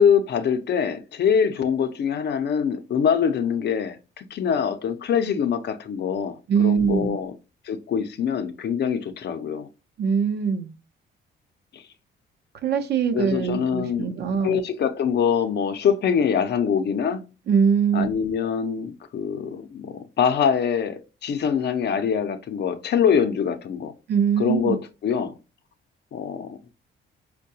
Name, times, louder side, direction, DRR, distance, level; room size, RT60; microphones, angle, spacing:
voice 1, 0.0-7.3 7.6-9.7 11.7-11.8 13.1-14.1 14.4-17.2 17.9-23.9 24.4-25.3 26.1-26.6, left 7 dB, 60° left, 0.7 m, -24 dB
voice 2, 6.5-7.1 10.0-10.7 12.6-14.6 17.5-18.1 24.1-24.8, right 7 dB, 55° right, 0.7 m, -22 dB
4.5 x 2.3 x 2.7 m
cardioid pair, 90°, 20 cm